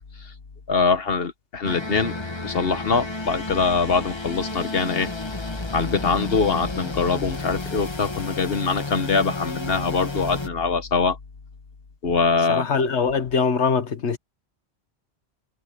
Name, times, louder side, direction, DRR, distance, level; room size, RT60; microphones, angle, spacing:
voice 1, 0.7-2.1 2.4-5.1 5.7-11.2 12.0-12.7, left 4 dB, 60° left, 1.4 m, -23 dB
sound 1, 1.6-10.5, left 2 dB, 25° left, 1.4 m, -31 dB
voice 2, 12.5-14.2, left 5 dB, 85° left, 1.6 m, -22 dB
omnidirectional pair, 1.1 m